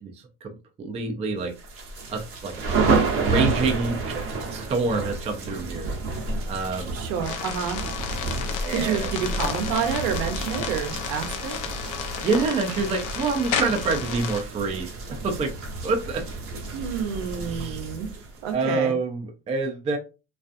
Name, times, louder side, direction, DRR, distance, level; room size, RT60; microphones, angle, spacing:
voice 1, 0.0-1.5 2.1-5.9 6.5-7.0 8.6-9.1 12.2-15.5 15.8-16.2 16.5-16.6 17.4-18.0 18.5-20.0, right 4 dB, 15° right, 0.4 m, -27 dB
sound 1, 1.6-18.5, right 3 dB, 35° right, 1.0 m, -30 dB
voice 2, 6.9-7.9 8.7-11.6 16.7-18.1 18.4-19.0, right 7 dB, 70° right, 0.7 m, -29 dB
sound 2, 7.2-14.4, left 8 dB, 50° left, 0.6 m, -32 dB
2.5 x 2.3 x 2.5 m
supercardioid pair, 125°, 41 cm